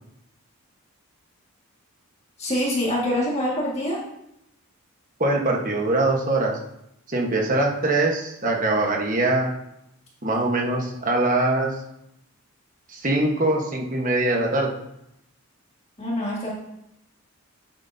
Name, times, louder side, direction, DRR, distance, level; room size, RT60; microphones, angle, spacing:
voice 1, 2.4-4.0 16.0-16.5, left 1 dB, 30° left, -5 dB, 2.0 m, -25 dB
voice 2, 5.2-6.5 7.1-9.5 10.2-11.7 12.9-14.7, right 2 dB, 35° right, 0 dB, 1.3 m, -22 dB
10.5 x 7.7 x 2.8 m, 0.82 s
head